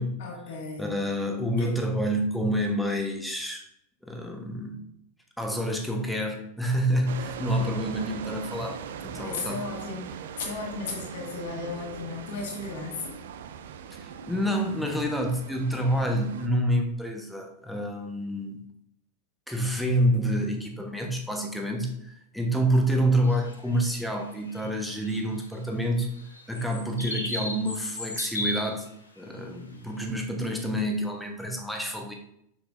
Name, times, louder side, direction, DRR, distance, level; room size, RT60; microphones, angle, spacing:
voice 1, 0.2-1.0 1.6-1.8 9.2-13.2 29.6-29.8, left 3 dB, 50° left, -1 dB, 2.0 m, -35 dB
voice 2, 0.8-3.7 4.0-4.9 5.4-9.6 13.9-18.6 19.5-26.1 26.5-28.9 29.2-32.1, equal, ahead, 2 dB, 1.1 m, -28 dB
sound 1, 7.1-16.5, right 7 dB, 60° right, 0.5 m, -40 dB
sound 2, 23.2-25.6 26.2-28.9 29.2-29.3 30.0-30.1, left 1 dB, 80° left, 1.0 m, -35 dB
6.6 x 6.4 x 2.6 m, 0.74 s
figure-of-eight pair, 90°, 0 cm